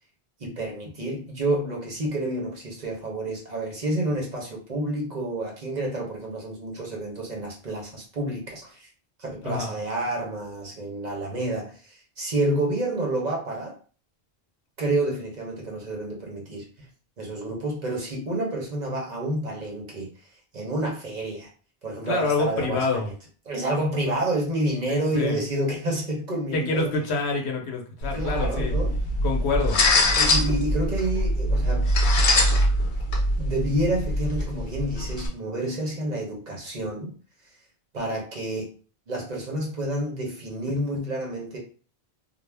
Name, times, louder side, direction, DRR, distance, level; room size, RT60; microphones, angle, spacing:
voice 1, 0.4-8.9 9.2-13.8 14.8-16.6 17.2-20.1 20.5-21.5 21.8-23.0 23.5-26.9 28.1-29.0 30.2-31.9 33.4-37.1 37.9-38.7 39.1-41.6, right 1 dB, 45° right, 0.8 m, -29 dB
voice 2, 22.0-23.1 24.9-25.4 26.5-28.8 29.2-29.8, left 3 dB, 80° left, 1.0 m, -27 dB
sound 1, 28.0-35.3, left 1 dB, 55° left, 0.7 m, -23 dB
2.3 x 2.1 x 3.2 m
omnidirectional pair, 1.1 m